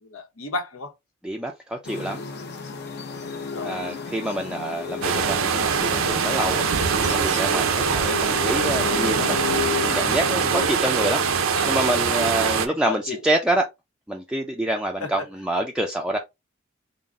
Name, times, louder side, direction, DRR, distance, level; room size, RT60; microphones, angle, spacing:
voice 1, 0.0-0.9 3.3-3.9 11.2-11.8 12.5-13.2 15.0-15.3, left 3 dB, 90° left, 1.0 m, -34 dB
voice 2, 1.2-2.2 3.6-11.2 11.7-13.7 14.1-16.2, right 1 dB, 5° right, 0.4 m, -27 dB
sound 1, 1.8-10.7, left 6 dB, 55° left, 0.8 m, -32 dB
sound 2, 5.0-12.7, right 6 dB, 75° right, 0.5 m, -23 dB
3.9 x 2.0 x 3.6 m
head